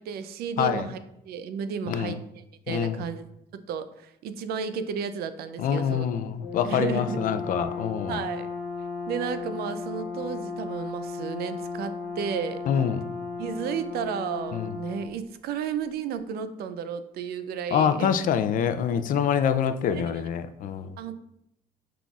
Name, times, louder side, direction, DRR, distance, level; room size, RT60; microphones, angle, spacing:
voice 1, 0.0-2.2 2.7-6.1 6.6-7.2 8.1-8.5 9.1-12.6 13.4-18.1 19.9-20.3 21.0-21.1, right 7 dB, 70° right, 11 dB, 0.4 m, -33 dB
voice 2, 2.7-3.0 5.6-8.2 12.7-13.0 14.5-14.7 17.7-21.0, left 8 dB, 55° left, 10 dB, 0.4 m, -26 dB
Brass instrument, 6.4-15.1, left 4 dB, 70° left, 1.2 m, -35 dB
5.8 x 3.8 x 2.4 m, 0.81 s
cardioid pair, 110°, 17 cm